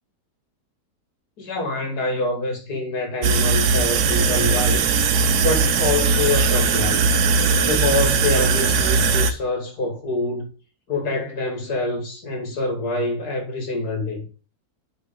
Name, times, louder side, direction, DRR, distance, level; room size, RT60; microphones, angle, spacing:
voice 1, 1.4-4.9 5.4-7.1 7.6-10.5 10.9-14.3, left 2 dB, 80° left, 2.6 m, -26 dB
sound 1, 3.2-9.3, right 4 dB, 80° right, 1.3 m, -19 dB
9.1 x 4.2 x 3.6 m
omnidirectional pair, 1.7 m